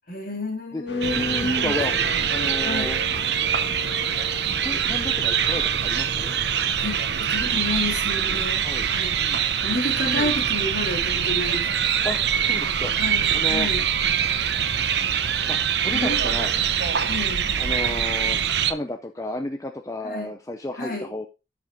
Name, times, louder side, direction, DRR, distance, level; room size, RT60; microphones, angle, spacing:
voice 1, 0.1-1.8 2.6-3.0 6.8-9.1 9.6-11.7 13.0-13.8 15.9-16.2 17.1-17.5 20.0-20.3 20.8-21.1, left 2 dB, 50° left, 2 dB, 3.0 m, -30 dB
sound 1, 0.9-8.7 9.1-9.4, left 3 dB, 70° left, 1.9 m, -40 dB
sound 2, 1.0-18.7, right 8 dB, 60° right, 0.7 m, -24 dB
voice 2, 1.1-2.0 2.3-3.0 4.6-6.3 8.6-8.9 9.2-9.4 10.1-10.3 12.0-12.9 13.3-13.7 15.5-16.5 17.6-18.4 18.7-21.3, left 1 dB, 15° left, 5 dB, 0.6 m, -32 dB
12.5 x 5.1 x 3.8 m, 0.28 s
head